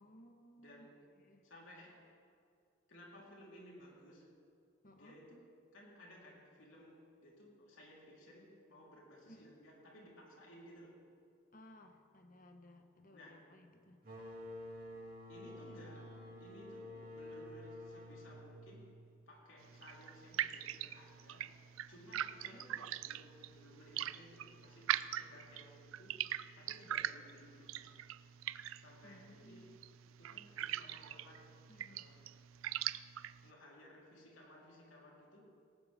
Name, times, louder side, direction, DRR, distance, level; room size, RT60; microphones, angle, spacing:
voice 1, 0.0-0.9 1.1-1.5 4.8-5.2 9.3-9.6 11.5-14.0 16.7-16.8 22.1-22.7 29.0-29.8 31.7-32.1, left 1 dB, 40° left, 5 dB, 1.2 m, -60 dB
voice 2, 0.6-1.0 1.4-2.2 2.9-4.3 4.9-5.4 5.7-11.1 13.1-13.6 15.3-19.0 19.3-21.6 21.9-26.3 26.6-28.0 28.8-29.7 30.2-32.3 33.4-35.5, equal, 80° left, -4 dB, 3.9 m, -58 dB
sound 1, 14.0-19.5, left 1 dB, 45° right, 2.7 m, -50 dB
sound 2, 15.4-19.6, equal, 15° right, 3.1 m, -68 dB
sound 3, 19.6-33.5, right 11 dB, 90° right, 0.4 m, -42 dB
18.5 x 18.5 x 3.7 m, 2.3 s
head